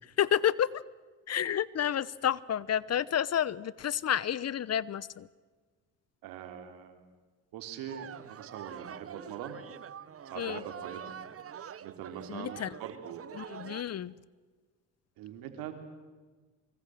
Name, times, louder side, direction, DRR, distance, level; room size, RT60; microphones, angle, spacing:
voice 1, 0.2-0.8 1.3-5.3 10.4-10.6 12.3-12.7 13.3-14.1, left 9 dB, 45° left, 21 dB, 0.9 m, -30 dB
voice 2, 6.2-7.0 7.5-9.6 10.3-11.1 11.8-13.3 15.2-15.7, right 9 dB, 80° right, 6 dB, 3.5 m, -42 dB
sound 1, 7.9-13.8, right 8 dB, 40° right, 1.0 m, -45 dB
25.0 x 24.0 x 7.8 m, 1.4 s
supercardioid pair, 70°, 35 cm